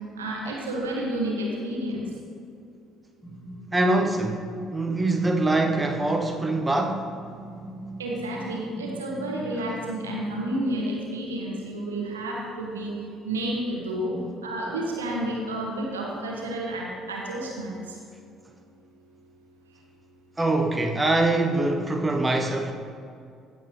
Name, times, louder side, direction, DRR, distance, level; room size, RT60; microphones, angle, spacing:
voice 1, 0.2-2.0 8.0-12.9 13.2-14.1 14.4-18.0, right 1 dB, 80° right, -2 dB, 1.4 m, -30 dB
sound 1, 3.2-10.6, right 1 dB, 10° left, 2.3 m, -40 dB
voice 2, 3.7-4.4 4.7-7.0 14.1-14.3 20.4-22.7, right 2 dB, 15° right, 3 dB, 0.9 m, -24 dB
16.0 x 7.4 x 3.1 m, 2.4 s
figure-of-eight pair, 50°, 0 cm